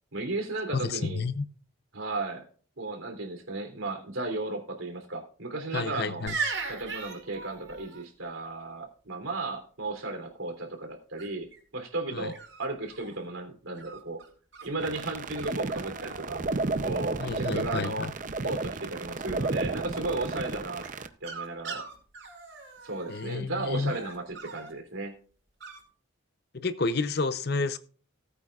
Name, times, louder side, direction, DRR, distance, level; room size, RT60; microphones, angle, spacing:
voice 1, 0.1-1.2 1.9-2.4 2.8-6.3 6.7-11.5 11.7-14.2 14.6-16.4 16.8-18.1 18.4-20.8 21.2-21.8 22.8-25.1, right 2 dB, 90° right, 3.2 m, -35 dB
voice 2, 0.7-1.4 5.7-6.3 12.1-12.3 17.2-18.1 23.1-23.9 26.5-27.8, left 4 dB, 50° left, 0.7 m, -30 dB
sound 1, 6.3-8.0 11.2-11.6 12.3-13.2 13.7-14.7 15.4-15.5 15.8-16.3 16.5-17.1 20.8-23.3 23.8-24.7 25.6-25.8, right 4 dB, 65° right, 5.3 m, -39 dB
sound 2, 14.8-21.1, right 3 dB, 40° right, 0.6 m, -33 dB
19.0 x 8.6 x 2.4 m
head